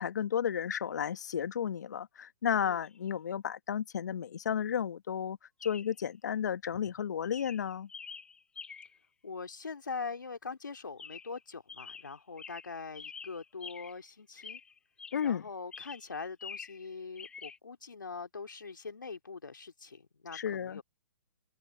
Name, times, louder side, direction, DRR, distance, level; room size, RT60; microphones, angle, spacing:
voice 1, 0.0-7.9 15.1-15.4 20.3-20.8, left 8 dB, 60° left, 1.3 m, -33 dB
Chirp tweet, 2.8-3.0 5.6-6.0 6.7-7.0 7.3-9.1 11.0-11.4 11.7-14.1 14.4-15.4 15.7-16.9 17.2-17.6, left 6 dB, 10° left, 1.0 m, -47 dB
voice 2, 9.2-14.6 15.2-20.8, left 4 dB, 80° left, 2.7 m, -42 dB
figure-of-eight pair, 130°, 10 cm